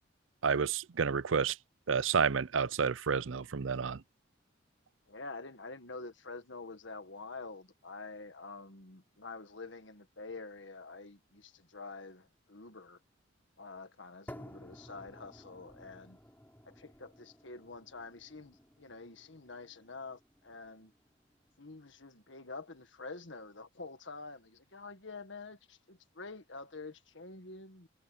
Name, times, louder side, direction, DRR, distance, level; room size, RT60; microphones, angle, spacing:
voice 1, 0.4-1.6 1.9-4.0, right 6 dB, 75° right, 0.6 m, -30 dB
voice 2, 5.1-13.0 13.6-16.2 16.6-20.9 21.6-27.9, left 3 dB, 65° left, 1.7 m, -47 dB
sound 1, 14.3-22.3, equal, 10° left, 5.8 m, -55 dB
head